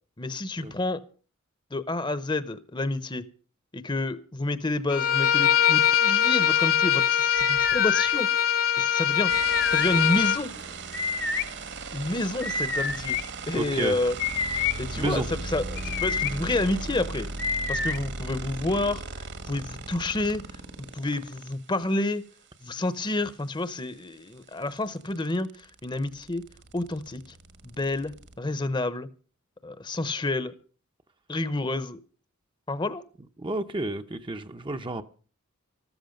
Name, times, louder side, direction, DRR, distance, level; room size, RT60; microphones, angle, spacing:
voice 1, 0.2-1.0 1.7-3.2 3.7-8.3 8.8-9.3 9.7-10.5 11.9-13.2 13.5-14.1 14.8-17.3 17.7-19.0 19.5-20.5 20.8-22.3 22.6-26.5 26.7-27.2 27.6-29.1 29.6-30.5 31.3-32.0 32.7-33.0, left 2 dB, 20° left, 14 dB, 0.8 m, -29 dB
Bowed string instrument, 4.9-10.4, left 10 dB, 80° left, 2.0 m, -22 dB
sound 1, 7.3-8.1 9.3-9.9 10.9-11.4 12.4-13.2 14.2-14.7 15.8-16.3 17.4-18.0, left 5 dB, 60° left, 1.4 m, -28 dB
sound 2, 9.3-21.5 23.6-23.7 24.0-28.4, right 3 dB, 55° right, 1.5 m, -37 dB
voice 2, 13.5-13.9 14.6-15.3 33.4-35.0, right 2 dB, 25° right, 7 dB, 0.7 m, -31 dB
14.0 x 13.0 x 5.2 m, 0.39 s
head